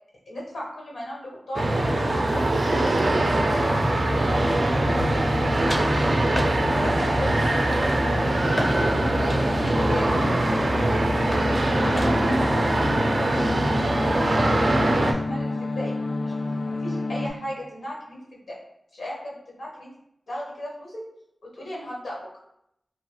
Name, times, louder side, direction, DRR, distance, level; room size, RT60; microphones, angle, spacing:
voice 1, 0.3-4.0 4.3-4.4 4.8-5.3 5.7-6.3 6.6-7.7 8.0-9.3 9.7-11.0 11.7-15.9 16.2-16.3 16.8-18.6 18.9-19.9 20.3-21.0 21.5-22.2, left 1 dB, 90° left, -4 dB, 1.0 m, -36 dB
sound 1, 1.5-15.1, right 1 dB, 55° right, 0.4 m, -22 dB
sound 2, 2.7-17.3, left 2 dB, 70° left, 0.5 m, -31 dB
sound 3, 5.0-5.4 5.7-5.9 6.4-6.6 7.1-7.4 7.7-8.8 9.3-10.9 11.3-11.5 12.0-12.4, left 1 dB, 25° left, 0.5 m, -33 dB
2.9 x 2.3 x 2.8 m, 0.75 s
wide cardioid pair, 60°, 0 cm